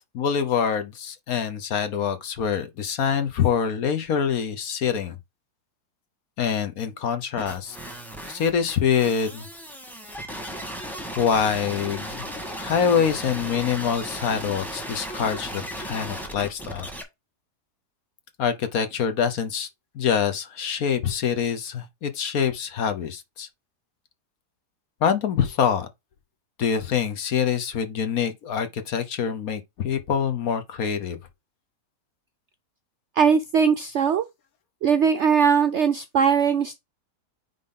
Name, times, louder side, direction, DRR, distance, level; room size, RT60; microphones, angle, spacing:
voice 1, 0.0-5.2 6.4-7.8 8.3-9.5 11.2-12.3 12.5-16.9 18.4-19.7 19.9-23.5 25.0-25.9 26.6-31.2, left 7 dB, 60° left, 1.4 m, -25 dB
sound 1, 7.4-17.0, equal, ahead, 1.5 m, -36 dB
voice 2, 33.2-34.3 34.8-36.7, right 6 dB, 70° right, 0.7 m, -20 dB
9.2 x 3.8 x 3.8 m
omnidirectional pair, 1.8 m